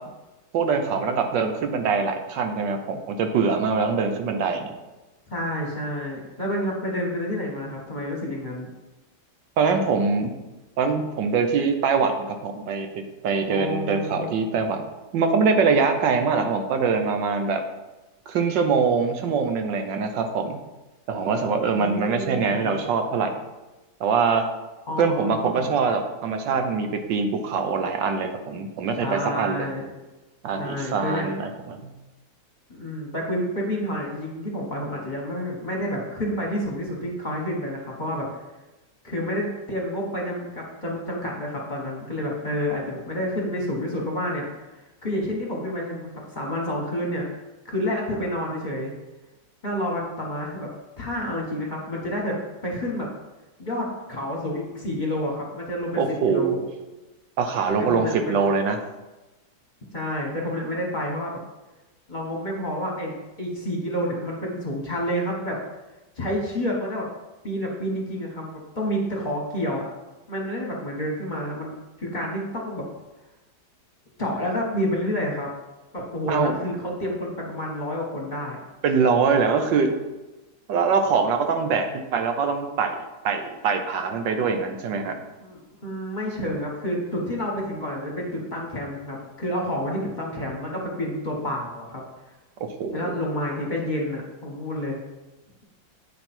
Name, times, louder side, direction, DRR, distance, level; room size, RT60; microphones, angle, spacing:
voice 1, 0.5-4.7 9.6-10.3 10.8-12.9 13.2-14.8 15.1-17.6 18.3-20.6 21.1-23.4 24.0-24.4 25.0-29.7 30.4-31.9 55.9-56.7 57.4-58.8 76.3-76.5 78.8-79.9 80.7-82.9 83.2-85.2 92.6-93.1, right 5 dB, 85° right, 6 dB, 1.5 m, -23 dB
voice 2, 5.3-8.7 13.5-14.4 21.6-22.8 24.9-25.7 29.0-29.8 30.6-31.3 32.7-38.3 39.0-47.3 47.6-48.9 49.6-50.7 51.0-52.4 52.6-53.1 53.6-56.6 57.9-58.4 59.9-61.4 62.1-63.1 63.4-65.6 66.2-67.1 67.4-69.8 70.3-72.8 74.2-75.5 75.9-78.6 85.4-92.0 92.9-95.0, equal, 25° left, -3 dB, 1.6 m, -29 dB
8.7 x 5.3 x 4.4 m, 1.1 s
omnidirectional pair, 1.9 m